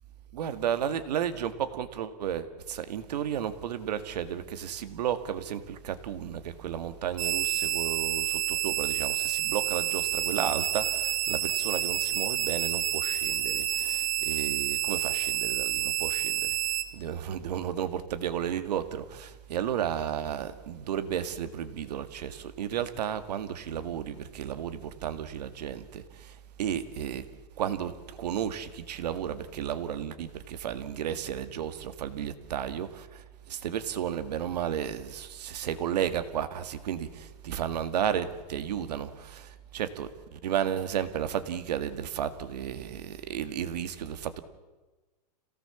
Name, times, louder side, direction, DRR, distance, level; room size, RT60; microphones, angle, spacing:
voice 1, 0.3-27.3 27.6-44.4, right 9 dB, 85° right, 2.0 m, -33 dB
sound 1, 7.2-16.8, right 12 dB, 55° right, 2.0 m, -29 dB
27.0 x 17.5 x 7.1 m
supercardioid pair, 175°, 20 cm